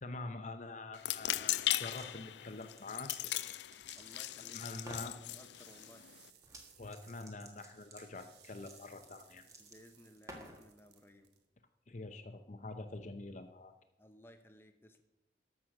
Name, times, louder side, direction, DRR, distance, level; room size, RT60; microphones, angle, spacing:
voice 1, 0.0-3.6 4.5-5.1 6.8-9.4 11.9-13.7, left 2 dB, 40° left, 8 dB, 0.7 m, -46 dB
sound 1, 0.9-6.3, left 14 dB, 75° left, 0.4 m, -38 dB
sound 2, 1.7-2.1 2.6-4.4 4.8-5.1 6.4-6.7 6.9-10.7, right 1 dB, 20° right, 1.6 m, -53 dB
voice 2, 3.9-6.1 9.6-11.3 14.0-15.0, left 1 dB, 15° left, 6 dB, 0.8 m, -59 dB
sound 3, 4.2-11.4, right 7 dB, 65° right, 1.2 m, -64 dB
13.5 x 6.3 x 6.4 m, 0.91 s
head